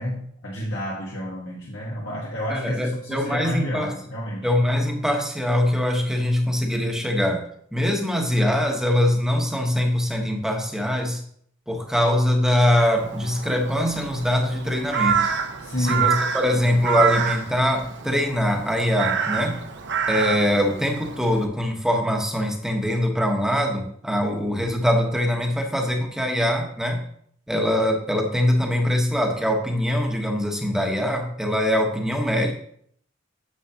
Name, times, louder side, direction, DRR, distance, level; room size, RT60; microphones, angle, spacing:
voice 1, 0.0-4.5 15.6-16.1, left 1 dB, 65° left, -4 dB, 1.5 m, -30 dB
voice 2, 2.5-3.9 4.4-7.4 7.7-11.2 11.7-15.3 15.8-19.6 20.1-27.0 27.5-32.5, left 1 dB, 5° right, 2 dB, 1.1 m, -23 dB
Crow, 13.0-21.5, right 6 dB, 65° right, 0.9 m, -27 dB
9.6 x 6.9 x 2.9 m, 0.64 s
head